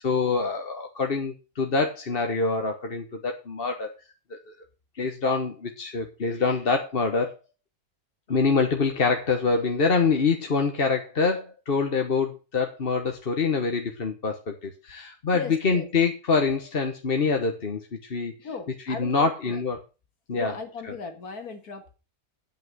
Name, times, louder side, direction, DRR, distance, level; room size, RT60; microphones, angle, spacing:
voice 1, 0.0-3.9 4.3-4.5 5.0-7.3 8.3-18.3 18.9-19.8 20.3-20.5 20.8-20.9, left 4 dB, 40° left, 3 dB, 1.3 m, -25 dB
voice 2, 15.3-15.8 18.4-19.6 20.3-21.9, left 5 dB, 85° left, 5 dB, 2.4 m, -37 dB
9.1 x 8.1 x 6.0 m, 0.31 s
omnidirectional pair, 1.5 m